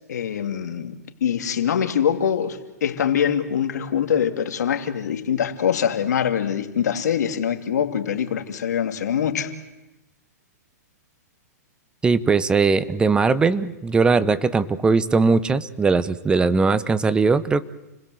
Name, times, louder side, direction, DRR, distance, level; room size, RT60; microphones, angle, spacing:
voice 1, 0.1-9.5, left 8 dB, 75° left, 7 dB, 2.8 m, -24 dB
voice 2, 12.0-17.6, right 4 dB, 10° right, 15 dB, 1.0 m, -19 dB
30.0 x 20.5 x 7.9 m, 1.0 s
hypercardioid pair, 140°, 9 cm